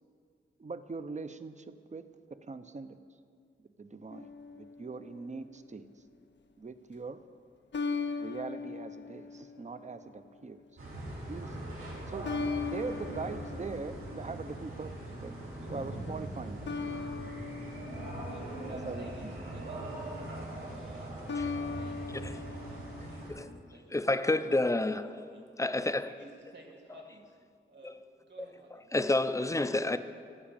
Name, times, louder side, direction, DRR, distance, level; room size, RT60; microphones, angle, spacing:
voice 1, 0.6-2.1 2.4-3.0 3.8-5.9 6.6-7.2 8.2-10.6 11.3-11.6 12.1-12.3 12.6-14.9 15.2-15.3 15.7-16.8 18.7-19.3, right 4 dB, 35° right, 0.6 m, -41 dB
sound 1, 4.1-5.4 7.7-10.2 12.2-14.8 16.7-19.2 21.3-23.6, left 4 dB, 60° left, 0.6 m, -39 dB
sound 2, 10.8-23.3, right 1 dB, 85° right, 3.5 m, -41 dB
voice 2, 18.2-20.3 20.6-21.2 21.6-22.0 22.7-24.1 24.4-25.6 26.1-27.4 27.7-28.8, right 2 dB, 60° right, 2.1 m, -53 dB
voice 3, 23.9-25.0 25.6-26.2 28.9-30.0, left 2 dB, 15° left, 0.5 m, -29 dB
13.5 x 5.0 x 8.8 m
wide cardioid pair, 70°, 21 cm